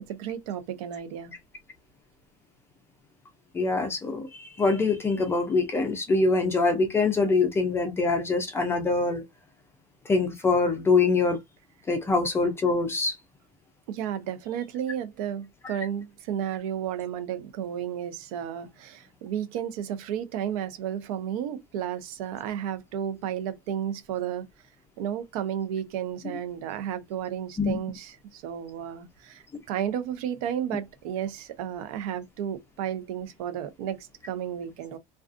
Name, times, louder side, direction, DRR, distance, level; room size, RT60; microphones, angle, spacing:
voice 1, 0.1-1.3 13.9-24.4 25.0-35.0, right 9 dB, 80° right, 0.6 m, -33 dB
voice 2, 3.5-9.2 10.1-11.4 11.9-13.2 15.6-15.8 27.6-27.8, left 3 dB, 15° left, 0.4 m, -24 dB
2.4 x 2.3 x 2.4 m
cardioid pair, 160°, 18 cm